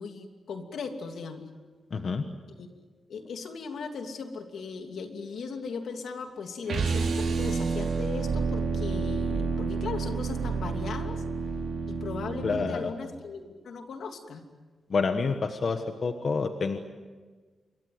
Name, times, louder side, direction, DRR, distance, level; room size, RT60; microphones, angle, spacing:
voice 1, 0.0-1.5 2.6-2.7 3.1-11.2 11.9-14.4, left 5 dB, 80° left, 5 dB, 2.8 m, -38 dB
voice 2, 1.9-2.2 12.4-12.9 14.9-16.8, left 4 dB, 45° left, 6 dB, 1.3 m, -28 dB
sound 1, 6.7-12.8, right 5 dB, 70° right, 4.7 m, -29 dB
27.5 x 23.5 x 8.0 m, 1.4 s
wide cardioid pair, 170°, 0 cm